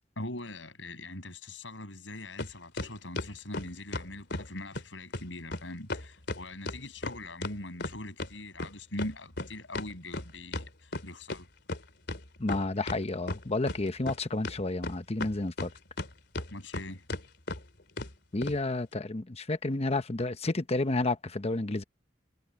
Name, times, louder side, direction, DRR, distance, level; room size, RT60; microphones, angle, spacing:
voice 1, 0.2-11.5 16.5-17.1, left 1 dB, 90° left, 7.0 m, -42 dB
sound 1, 2.4-2.5 2.8-4.5 4.7-4.8 5.1-5.3 5.5-5.6 5.9-8.3 8.6-11.4 11.7-11.8 12.1-13.0 13.3-14.2 14.4-16.1 16.3-16.8 17.1-17.2 17.5-17.6 18.0-18.1 18.4-18.6, left 2 dB, 65° left, 3.3 m, -35 dB
voice 2, 12.4-15.7 18.3-21.8, left 2 dB, 35° left, 1.0 m, -31 dB
head